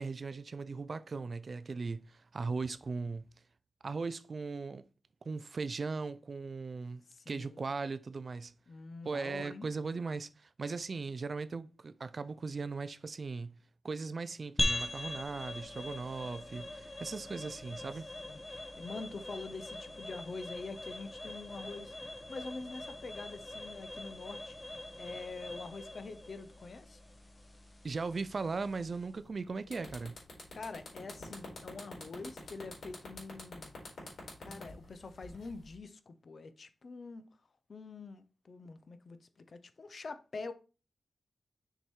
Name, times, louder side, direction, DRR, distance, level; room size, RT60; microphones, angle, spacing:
voice 1, 0.0-3.3 3.8-4.8 5.3-8.5 9.0-13.6 13.8-18.1 27.8-30.2, right 4 dB, 45° right, 0.4 m, -38 dB
voice 2, 7.1-7.7 8.7-9.7 18.2-21.9 22.3-24.6 25.0-27.0 30.5-33.7 34.4-37.3 37.7-40.5, left 3 dB, 50° left, 0.7 m, -45 dB
sound 1, 14.6-29.2, left 2 dB, 20° left, 1.0 m, -42 dB
sound 2, 29.2-29.3 29.6-35.7, left 3 dB, 75° left, 3.8 m, -47 dB
6.5 x 4.7 x 4.5 m
wide cardioid pair, 140°, 0 cm